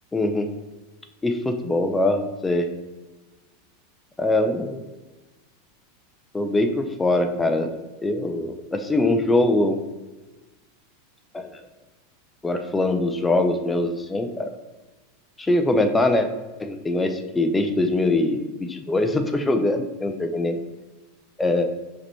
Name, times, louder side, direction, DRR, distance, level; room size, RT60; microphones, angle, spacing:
voice 1, 0.1-0.5 1.2-2.7 4.2-4.8 6.3-7.7 8.0-9.8 11.3-11.5 12.4-14.5 15.4-16.3 16.6-20.6 21.4-21.7, left 2 dB, 10° left, 6 dB, 0.4 m, -22 dB
4.8 x 3.3 x 2.8 m, 1.2 s
figure-of-eight pair, 85°, 0 cm